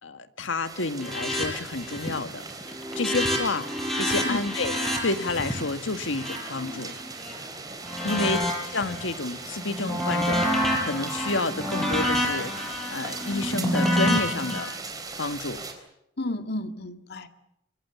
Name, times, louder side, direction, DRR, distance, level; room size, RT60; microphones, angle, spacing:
voice 1, 0.0-2.4 3.0-4.7 5.0-6.9 8.0-8.4 8.7-14.7 15.2-15.6, left 3 dB, 85° left, 10 dB, 1.7 m, -30 dB
sound 1, 0.6-15.7, right 4 dB, 20° right, 4.0 m, -40 dB
sound 2, 1.0-1.5 1.7-2.2 2.5-7.3 7.8-9.1 9.5-14.6, equal, ahead, 7.6 m, -28 dB
voice 2, 8.1-8.4 16.2-17.3, left 2 dB, 60° left, 8 dB, 2.0 m, -32 dB
27.0 x 24.5 x 7.1 m, 0.84 s
head